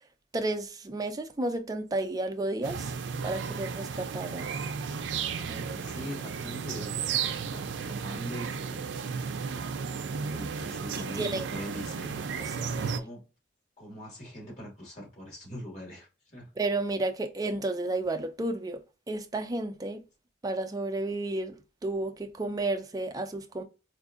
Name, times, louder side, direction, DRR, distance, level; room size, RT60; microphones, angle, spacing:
voice 1, 0.3-2.9 3.2-4.5 11.1-11.5 12.6-12.9 16.6-18.8 19.1-20.0 20.4-21.5 21.8-23.6, right 2 dB, 20° right, 0.4 m, -32 dB
sound 1, 2.6-13.0, right 6 dB, 80° right, 0.4 m, -34 dB
voice 2, 4.9-7.0 7.5-9.0 10.1-12.1 12.9-13.2 13.8-16.5, equal, 40° left, 1.9 m, -43 dB
4.5 x 2.6 x 2.4 m
head